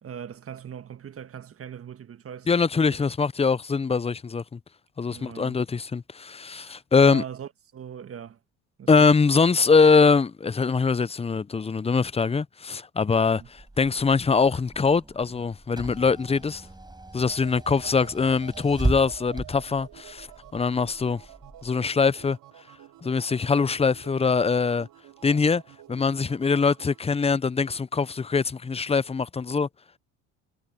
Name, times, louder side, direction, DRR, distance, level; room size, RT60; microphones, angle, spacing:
voice 1, 0.0-3.0 5.1-5.6 6.6-8.4 8.8-9.1 13.3-13.5, right 8 dB, 35° right, 1.5 m, -40 dB
voice 2, 2.5-4.6 5.0-7.2 8.9-16.7 17.1-20.3 20.5-21.2 21.6-22.4 23.0-24.9 25.2-25.6 25.9-29.7, left 5 dB, 15° left, 0.7 m, -23 dB
Car / Engine, 13.4-21.7, right 2 dB, 10° right, 7.6 m, -36 dB
sound 1, 17.3-27.0, right 15 dB, 60° right, 6.0 m, -49 dB
hypercardioid pair, 70°, 38 cm